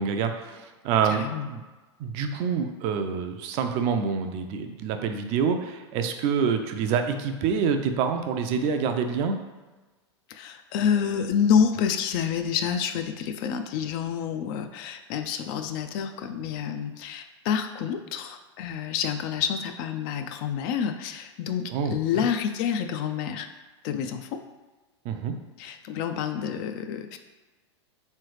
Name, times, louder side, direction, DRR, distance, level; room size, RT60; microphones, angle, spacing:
voice 1, 0.0-1.6 2.0-9.3 21.7-22.3 25.1-25.3, right 6 dB, 45° right, 6 dB, 0.4 m, -27 dB
voice 2, 1.1-1.5 10.3-23.5 23.8-24.4 25.6-27.2, left 7 dB, 50° left, 7 dB, 0.4 m, -28 dB
3.7 x 3.2 x 3.2 m, 1.2 s
hypercardioid pair, 105°, 15 cm